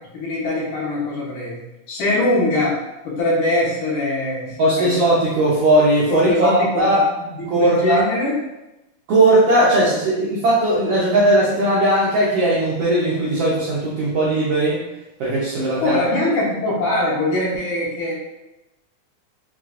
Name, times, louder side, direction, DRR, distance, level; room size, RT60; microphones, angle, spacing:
voice 1, 0.1-1.6 1.9-2.8 3.0-5.0 6.1-6.8 7.6-8.3 15.8-18.1, left 1 dB, 75° left, -8 dB, 2.7 m, -22 dB
voice 2, 4.6-7.0 7.5-8.0 9.1-14.8 15.2-16.0, right 1 dB, 75° right, -7 dB, 1.4 m, -18 dB
5.9 x 2.4 x 2.5 m, 0.97 s
omnidirectional pair, 3.5 m